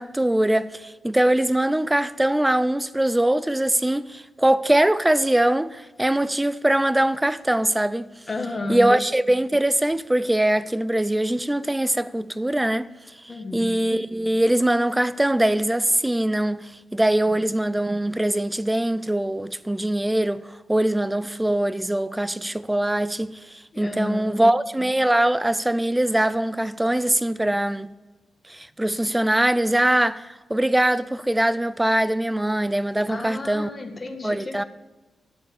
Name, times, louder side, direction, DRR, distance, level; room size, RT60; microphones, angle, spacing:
voice 1, 0.0-8.1 8.7-12.9 13.2-27.9 28.5-33.7 34.2-34.6, right 1 dB, 10° right, 0.4 m, -22 dB
voice 2, 8.3-8.9 13.3-13.7 23.7-24.4 33.1-34.6, left 2 dB, 25° left, 1.5 m, -31 dB
11.5 x 6.8 x 7.1 m
wide cardioid pair, 130°, 0 cm